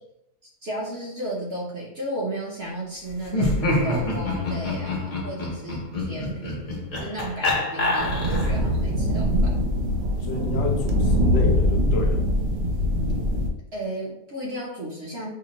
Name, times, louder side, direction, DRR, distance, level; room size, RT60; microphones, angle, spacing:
voice 1, 0.6-6.7 6.9-9.6 13.7-15.3, right 1 dB, 50° right, -4 dB, 0.8 m, -34 dB
Laughter, 3.3-8.7, left 2 dB, 35° left, 0.5 m, -26 dB
sound 1, 8.0-13.5, equal, 85° right, 0.5 m, -22 dB
voice 2, 10.2-12.2, left 3 dB, 60° left, 2 dB, 0.9 m, -30 dB
4.9 x 2.1 x 2.9 m, 0.80 s
omnidirectional pair, 1.8 m